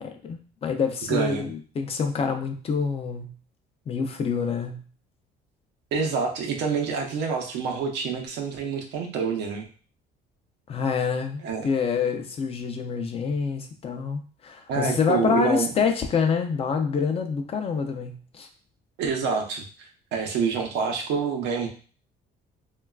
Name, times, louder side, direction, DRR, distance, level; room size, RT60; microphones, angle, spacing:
voice 1, 0.0-3.3 3.9-4.8 10.7-18.5, left 5 dB, 35° left, 5 dB, 0.4 m, -27 dB
voice 2, 1.1-1.5 5.9-9.7 11.4-11.7 14.7-15.7 19.0-21.7, right 5 dB, 85° right, 2 dB, 0.7 m, -27 dB
3.0 x 2.3 x 2.3 m, 0.39 s
cardioid pair, 130°, 18 cm